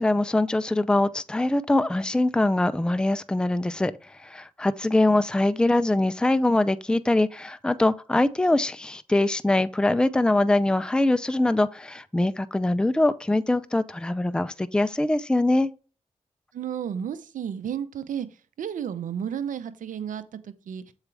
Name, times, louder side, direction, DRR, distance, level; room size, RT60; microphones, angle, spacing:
voice 1, 0.0-3.9 4.2-15.7, left 2 dB, 5° left, 0.5 m, -23 dB
voice 2, 16.5-18.3 18.6-20.9, right 8 dB, 85° right, 0.7 m, -32 dB
7.3 x 4.9 x 3.3 m
cardioid pair, 55°, 13 cm